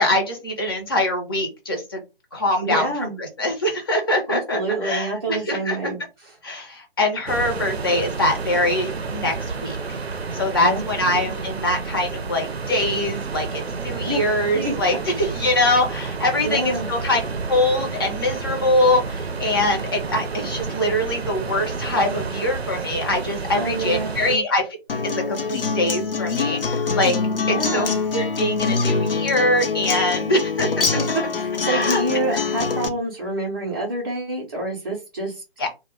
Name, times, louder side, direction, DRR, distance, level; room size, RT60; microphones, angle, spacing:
voice 1, 0.0-2.0 2.3-2.9 3.2-5.8 6.4-9.3 9.6-10.0 10.3-17.2 17.5-24.7 25.0-27.2 27.5-27.9 28.1-30.8 31.7-32.0 32.3-32.4 35.6-35.7, left 1 dB, 25° left, 2 dB, 0.6 m, -23 dB
voice 2, 2.6-3.2 4.3-6.3 10.6-11.2 14.0-14.7 16.4-16.9 23.5-24.4 27.5-28.0 31.0-35.4, right 2 dB, 25° right, -5 dB, 0.5 m, -27 dB
sound 1, 7.3-24.4, right 4 dB, 85° right, 0.5 m, -30 dB
Acoustic guitar, 24.9-32.9, left 4 dB, 65° left, 0.6 m, -24 dB
2.1 x 2.1 x 3.3 m, 0.26 s
figure-of-eight pair, 140°, 30 cm